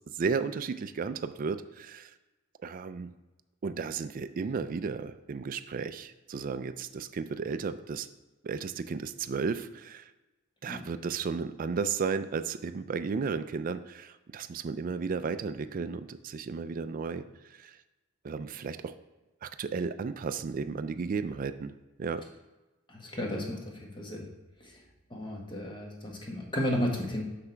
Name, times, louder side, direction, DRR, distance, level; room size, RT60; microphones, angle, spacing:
voice 1, 0.2-2.1 2.6-3.1 3.6-8.1 8.4-10.1 10.6-17.2 17.6-17.7 18.2-18.9 19.4-21.7 22.0-22.2, right 5 dB, 40° right, 11 dB, 0.3 m, -34 dB
voice 2, 22.9-24.3 25.1-27.2, equal, 25° left, -1 dB, 1.2 m, -33 dB
8.2 x 5.9 x 3.3 m, 1.1 s
head